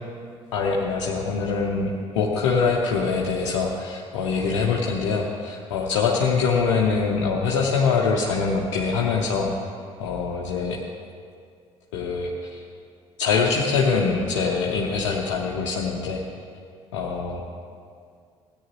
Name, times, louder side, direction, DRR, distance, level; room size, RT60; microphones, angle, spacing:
voice 1, 0.5-9.5 10.0-10.8 11.9-12.6 13.2-16.2 16.9-17.4, left 5 dB, 70° left, -2 dB, 0.9 m, -24 dB
16.5 x 10.0 x 3.0 m, 2.2 s
figure-of-eight pair, 55°, 15 cm